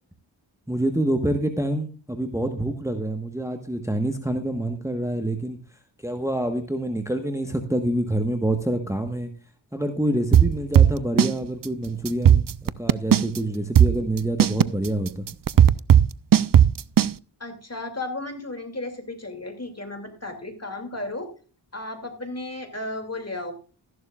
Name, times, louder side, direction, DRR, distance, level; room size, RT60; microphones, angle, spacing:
voice 1, 0.7-5.6 6.0-9.3 9.7-15.3, right 1 dB, 5° right, 6 dB, 1.3 m, -27 dB
sound 1, 10.3-11.3 11.6-11.7 12.1-13.4 13.7-17.1, right 9 dB, 45° right, 0.5 m, -15 dB
voice 2, 17.4-21.3 21.7-23.5, left 2 dB, 30° left, 6 dB, 2.7 m, -34 dB
14.0 x 11.0 x 2.4 m, 0.36 s
cardioid pair, 45°, 47 cm